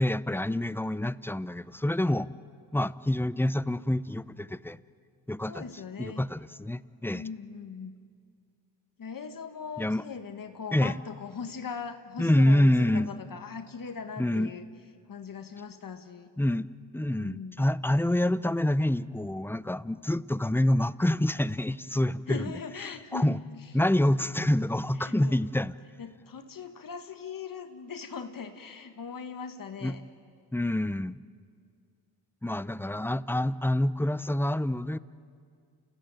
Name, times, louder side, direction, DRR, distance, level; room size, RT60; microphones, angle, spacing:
voice 1, 0.0-2.3 2.7-4.8 5.3-5.6 6.0-7.2 9.8-10.0 10.7-11.0 12.2-13.1 14.2-14.5 16.4-22.5 23.1-23.4 23.7-25.7 29.8-30.0 30.5-31.2 32.4-35.0, left 1 dB, 5° left, 16 dB, 0.6 m, -27 dB
voice 2, 5.5-6.3 7.1-8.0 9.0-14.6 15.1-16.3 17.2-17.7 22.3-23.4 24.9-25.3 26.0-30.0, left 6 dB, 50° left, 7 dB, 1.7 m, -40 dB
29.5 x 16.5 x 9.2 m, 2.2 s
cardioid pair, 65°, 41 cm